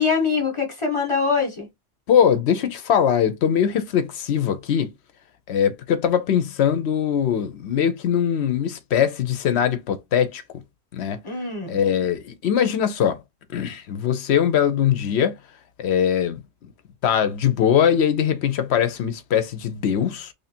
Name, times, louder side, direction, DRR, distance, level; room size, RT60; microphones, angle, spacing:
voice 1, 0.0-1.7 11.2-11.8, left 5 dB, 25° left, 1.1 m, -23 dB
voice 2, 2.1-4.9 5.5-10.4 10.9-11.2 11.7-13.2 13.5-15.3 15.8-16.4 17.0-20.3, left 8 dB, 70° left, 0.8 m, -21 dB
3.1 x 2.5 x 4.2 m
omnidirectional pair, 1.2 m